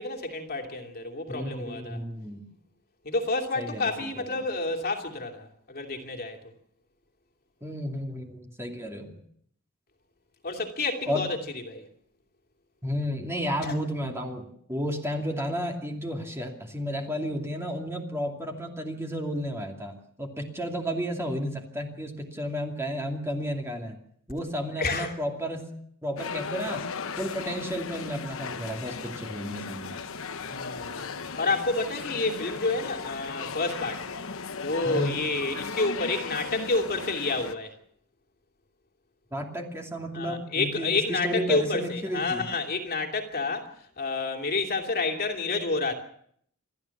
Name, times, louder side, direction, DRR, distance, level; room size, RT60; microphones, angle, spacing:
voice 1, 0.0-2.0 3.0-6.4 10.4-11.4 11.7-11.8 13.6-13.7 24.8-25.1 30.4-31.1 31.4-34.1 34.6-37.8 40.1-43.7 44.0-45.9, left 3 dB, 45° left, 2.8 m, -29 dB
voice 2, 1.3-2.5 3.6-4.4 7.6-9.1 11.1-11.3 12.8-14.4 14.7-24.0 24.3-25.7 26.0-26.8 27.2-29.9 34.8-35.2 39.3-42.5, equal, 10° right, 2.5 m, -32 dB
sound 1, 26.2-37.6, left 5 dB, 65° left, 1.2 m, -36 dB
28.5 x 12.5 x 7.2 m
head